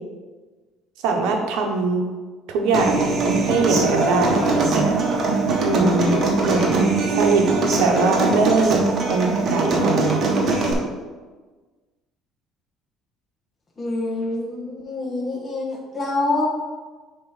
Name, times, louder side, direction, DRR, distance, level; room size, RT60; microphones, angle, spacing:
voice 1, 1.0-2.0 2.5-5.0 5.6-6.1 6.4-7.5 7.8-8.8 9.1-10.3, right 3 dB, 85° right, 3 dB, 1.0 m, -22 dB
Human voice / Acoustic guitar, 2.7-10.7, right 3 dB, 40° right, 1.0 m, -21 dB
voice 2, 13.8-16.5, left 2 dB, 20° left, -3 dB, 1.2 m, -26 dB
7.1 x 3.0 x 4.9 m, 1.3 s
cardioid pair, 140°, 0 cm